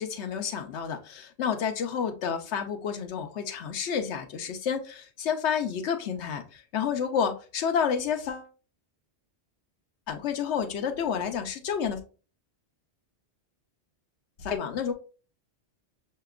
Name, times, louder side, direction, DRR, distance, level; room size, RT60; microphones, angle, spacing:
voice 1, 0.0-8.5 10.1-12.0 14.4-14.9, left 7 dB, 85° left, 0.9 m, -30 dB
5.7 x 2.8 x 2.3 m
omnidirectional pair, 1.1 m